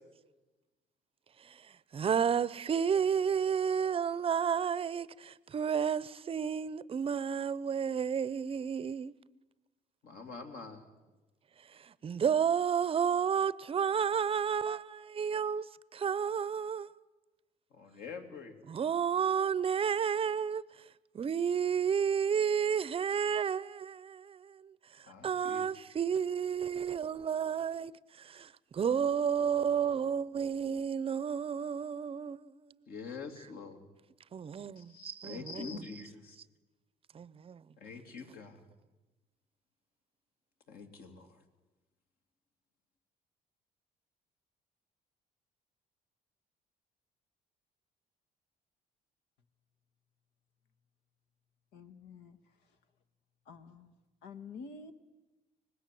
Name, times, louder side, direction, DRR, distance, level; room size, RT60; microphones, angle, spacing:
voice 1, 1.9-9.1 11.7-15.6 15.9-16.9 18.7-20.6 21.1-27.9 28.2-32.8 34.3-35.9 37.1-37.6, right 7 dB, 35° right, 0.7 m, -31 dB
voice 2, 10.0-10.8 17.7-18.5 25.1-25.7 32.9-33.8 34.8-36.4 37.8-38.6 40.7-41.3, left 5 dB, 65° left, 3.0 m, -45 dB
voice 3, 51.7-52.4 53.5-53.9 54.2-54.9, left 4 dB, 80° left, 1.7 m, -48 dB
24.0 x 20.0 x 7.7 m
cardioid pair, 110°, 17 cm